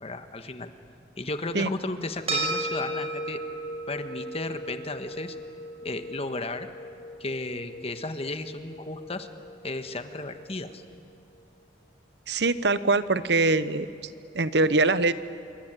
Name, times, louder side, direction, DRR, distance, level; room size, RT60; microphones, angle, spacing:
voice 1, 0.0-0.7 1.2-3.4 3.9-5.4 5.8-6.7 7.2-9.3 9.6-10.8, left 2 dB, 35° left, 8 dB, 1.5 m, -34 dB
sound 1, 2.3-10.9, right 1 dB, 35° right, 5.9 m, -36 dB
voice 2, 12.3-15.1, right 3 dB, 70° right, 14 dB, 1.0 m, -23 dB
27.5 x 23.5 x 9.1 m, 2.5 s
head